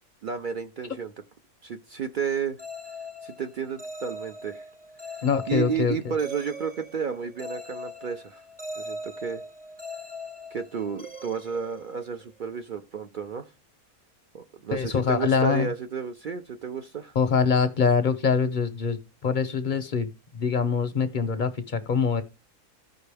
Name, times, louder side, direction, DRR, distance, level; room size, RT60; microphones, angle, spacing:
voice 1, 0.2-1.1 1.6-2.6 3.2-4.6 5.5-8.4 8.8-9.4 10.5-13.5 14.3-17.1, right 6 dB, 60° right, 0.5 m, -32 dB
sound 1, 2.6-12.4, left 1 dB, 10° right, 0.5 m, -41 dB
voice 2, 5.2-6.0 14.7-15.7 17.2-19.0 19.2-20.1 20.3-22.2, left 5 dB, 55° left, 0.5 m, -24 dB
14.5 x 5.2 x 3.4 m
omnidirectional pair, 1.6 m